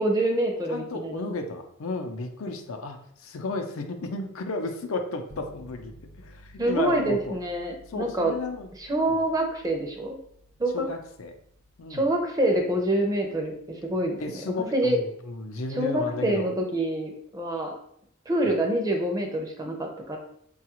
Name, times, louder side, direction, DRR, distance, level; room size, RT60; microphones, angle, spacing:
voice 1, 0.0-1.3 6.6-8.3 8.8-10.2 10.6-10.9 11.9-15.0 15.7-17.7 18.3-20.2, right 1 dB, 20° right, 3 dB, 0.5 m, -26 dB
voice 2, 0.7-5.9 6.2-7.4 7.9-8.7 9.1-9.2 10.7-11.3 11.8-12.0 14.2-16.5 18.5-18.6, left 3 dB, 80° left, 5 dB, 0.5 m, -33 dB
sound 1, 5.3-14.3, equal, 60° right, 1.0 m, -53 dB
4.7 x 2.3 x 2.9 m, 0.69 s
head